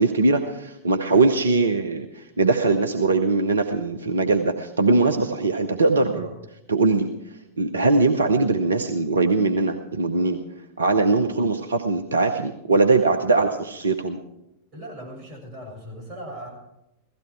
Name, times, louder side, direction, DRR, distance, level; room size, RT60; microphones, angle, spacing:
voice 1, 0.0-6.3 6.7-7.1 7.6-10.4 10.8-14.2, right 3 dB, 70° right, 7 dB, 0.9 m, -21 dB
voice 2, 14.7-16.5, equal, 30° right, 0 dB, 6.7 m, -38 dB
16.5 x 15.0 x 4.6 m, 0.90 s
figure-of-eight pair, 90°, 0 cm